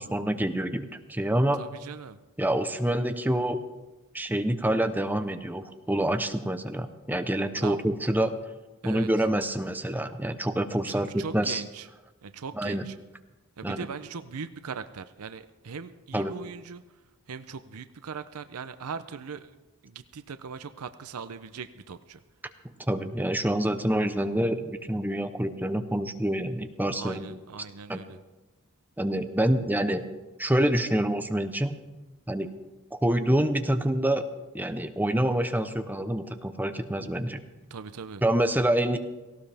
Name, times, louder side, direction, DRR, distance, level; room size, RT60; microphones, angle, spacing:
voice 1, 0.0-1.6 2.4-3.6 4.1-8.3 8.8-11.6 12.6-12.8 13.6-13.9 16.1-16.3 22.9-27.3 27.9-28.0 29.0-30.0 30.4-31.8 32.3-32.5 32.9-34.2 34.5-37.4 38.2-39.0, right 1 dB, 10° right, 9 dB, 0.7 m, -27 dB
voice 2, 1.6-2.2 7.6-7.8 8.8-9.1 10.8-11.9 12.2-12.9 13.6-16.8 17.3-19.5 19.8-22.2 27.0-28.2 37.7-38.2, right 5 dB, 85° right, 11 dB, 0.6 m, -40 dB
18.0 x 16.5 x 3.4 m, 1.1 s
head